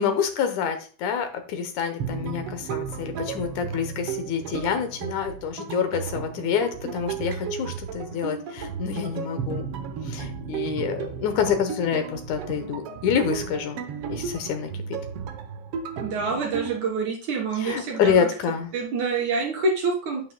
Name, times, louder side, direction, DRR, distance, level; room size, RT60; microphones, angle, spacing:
voice 1, 0.0-9.7 10.1-13.8 14.1-15.0 17.6-18.7, left 7 dB, 80° left, 7 dB, 2.4 m, -27 dB
sound 1, 2.0-16.8, right 6 dB, 70° right, 1.5 m, -34 dB
voice 2, 16.0-18.1 18.7-20.2, right 4 dB, 85° right, -2 dB, 4.5 m, -26 dB
9.4 x 9.1 x 2.2 m, 0.39 s
omnidirectional pair, 3.3 m